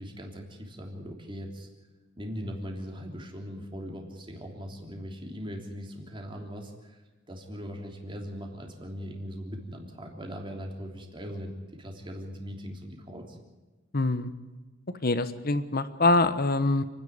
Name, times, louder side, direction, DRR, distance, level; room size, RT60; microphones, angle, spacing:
voice 1, 0.0-1.7 2.2-7.0 7.3-13.4, equal, 25° right, 2 dB, 3.4 m, -40 dB
voice 2, 13.9-14.3 15.0-16.8, left 2 dB, 50° left, 12 dB, 1.2 m, -24 dB
28.5 x 10.5 x 9.5 m, 1.2 s
head